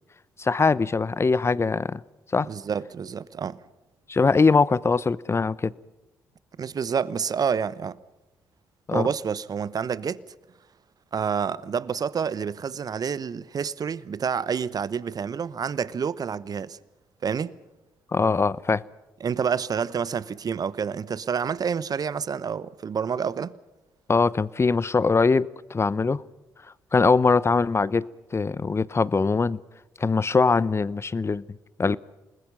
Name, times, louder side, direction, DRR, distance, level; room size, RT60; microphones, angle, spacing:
voice 1, 0.4-2.0 2.3-2.5 4.1-5.7 8.9-9.1 18.1-18.8 24.1-26.2 26.9-29.6 30.0-32.0, left 4 dB, 30° left, 0.8 m, -22 dB
voice 2, 2.4-3.6 6.6-8.0 8.9-10.2 11.1-16.8 17.2-17.6 19.2-23.6, right 6 dB, 45° right, 1.0 m, -28 dB
28.5 x 20.0 x 5.5 m
hypercardioid pair, 45°, 9 cm